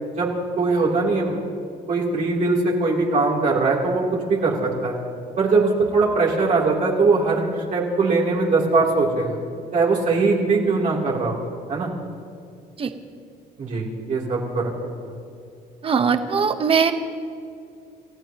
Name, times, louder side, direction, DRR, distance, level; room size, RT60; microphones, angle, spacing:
voice 1, 0.6-1.4 1.9-5.0 5.4-9.4 9.7-11.4 11.7-11.9 13.6-15.1, right 3 dB, 50° right, -4 dB, 3.2 m, -21 dB
voice 2, 15.8-16.9, right 6 dB, 35° right, 8 dB, 1.1 m, -20 dB
30.0 x 15.0 x 3.0 m, 2.4 s
cardioid pair, 130°, 16 cm